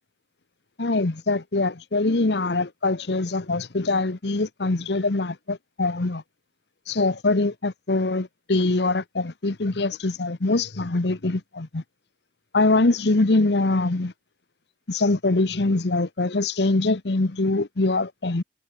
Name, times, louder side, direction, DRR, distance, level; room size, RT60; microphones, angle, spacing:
voice 1, 0.8-6.2 6.9-11.8 12.5-14.1 14.9-18.4, left 2 dB, 65° left, 1.0 m, -23 dB
head